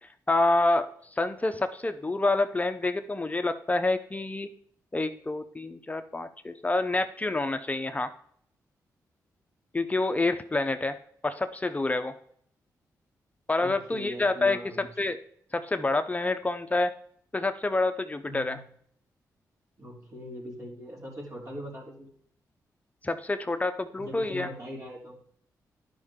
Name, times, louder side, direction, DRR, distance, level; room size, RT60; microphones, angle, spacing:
voice 1, 0.0-4.5 4.9-8.1 9.7-10.9 11.2-12.1 13.5-15.2 15.5-16.9 17.3-18.6 23.0-24.5, left 2 dB, 20° left, 8 dB, 0.5 m, -28 dB
voice 2, 13.6-14.8 18.3-18.6 19.8-22.1 24.0-25.2, equal, 50° right, -2 dB, 3.2 m, -41 dB
11.0 x 5.4 x 3.6 m, 0.64 s
cardioid pair, 70°, 7 cm